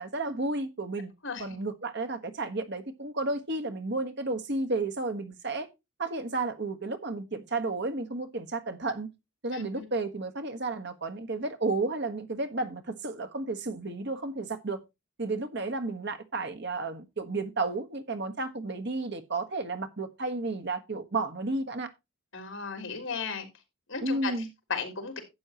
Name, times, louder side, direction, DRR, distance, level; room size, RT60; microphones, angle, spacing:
voice 1, 0.0-1.1 1.4-5.7 6.0-9.1 9.4-14.8 15.2-21.9 24.0-24.5, right 3 dB, 55° right, 1.3 m, -32 dB
voice 2, 9.5-9.9 22.3-23.5 23.9-25.2, left 5 dB, 65° left, 3.6 m, -35 dB
12.0 x 8.9 x 3.0 m
head